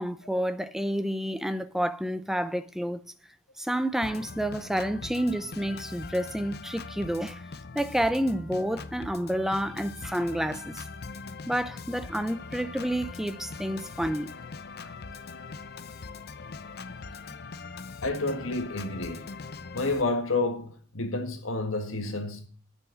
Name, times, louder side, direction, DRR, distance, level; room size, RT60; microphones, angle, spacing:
voice 1, 0.0-3.0 3.6-7.4 7.7-10.8 11.5-14.3, equal, ahead, 0.6 m, -29 dB
Organ, 4.0-20.0, left 4 dB, 55° left, 0.7 m, -41 dB
voice 2, 18.0-19.3 19.7-22.5, left 2 dB, 85° left, 1.7 m, -30 dB
9.7 x 7.0 x 7.9 m
head